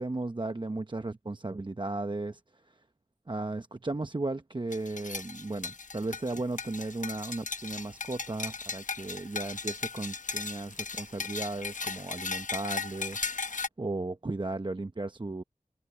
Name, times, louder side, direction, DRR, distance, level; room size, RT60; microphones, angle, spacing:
voice 1, 0.0-2.8 3.3-15.4, right 2 dB, 35° right, 0.8 m, -35 dB
sound 1, 4.7-13.7, left 4 dB, 70° left, 0.8 m, -37 dB
wide cardioid pair, 40°, 14 cm